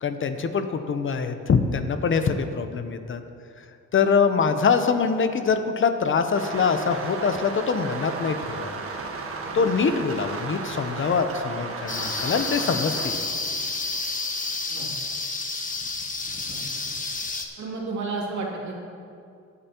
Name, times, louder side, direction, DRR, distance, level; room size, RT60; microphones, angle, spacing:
voice 1, 0.0-3.2 3.9-8.8 9.5-13.2, left 5 dB, 40° left, 8 dB, 0.7 m, -24 dB
sound 1, 6.3-13.1, right 4 dB, 50° right, 1.4 m, -34 dB
sound 2, 11.9-17.5, left 3 dB, 25° left, 1.2 m, -30 dB
voice 2, 17.6-18.8, right 3 dB, 70° right, -3 dB, 2.7 m, -32 dB
17.5 x 8.8 x 2.9 m, 2.4 s
cardioid pair, 90°, 30 cm